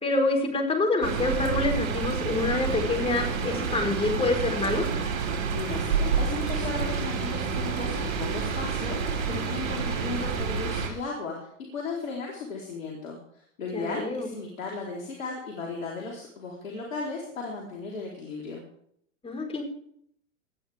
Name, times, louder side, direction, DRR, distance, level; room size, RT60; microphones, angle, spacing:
voice 1, 0.0-4.9 13.7-14.3 19.2-19.6, left 2 dB, 15° left, 2 dB, 4.6 m, -26 dB
sound 1, 1.0-10.9, right 5 dB, 65° right, 4.7 m, -29 dB
voice 2, 5.3-13.2 13.6-18.6, left 3 dB, 80° left, -2 dB, 4.3 m, -35 dB
19.5 x 13.0 x 3.6 m, 0.68 s
hypercardioid pair, 105°, 39 cm